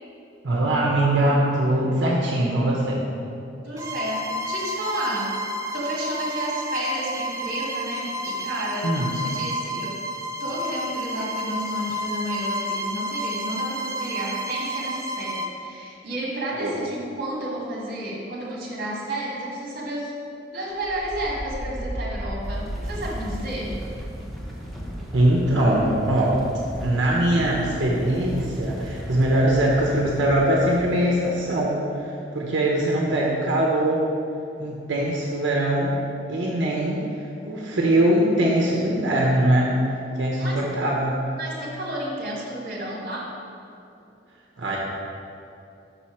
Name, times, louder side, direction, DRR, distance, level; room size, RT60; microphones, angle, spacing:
voice 1, 0.4-3.0 8.8-9.1 16.6-16.7 25.1-26.4 26.8-34.0 34.6-36.0 36.3-39.7 40.2-41.1 44.6-44.8, right 1 dB, 90° right, -3 dB, 0.8 m, -22 dB
voice 2, 3.6-5.4 5.7-10.0 10.4-20.1 20.5-23.7 40.4-40.6 41.4-43.3, right 1 dB, 55° right, -4 dB, 1.6 m, -31 dB
Bowed string instrument, 3.8-15.6, equal, 15° right, 0.4 m, -30 dB
sound 1, 20.7-31.5, equal, ahead, 0.8 m, -35 dB
5.6 x 4.3 x 5.7 m, 2.6 s
head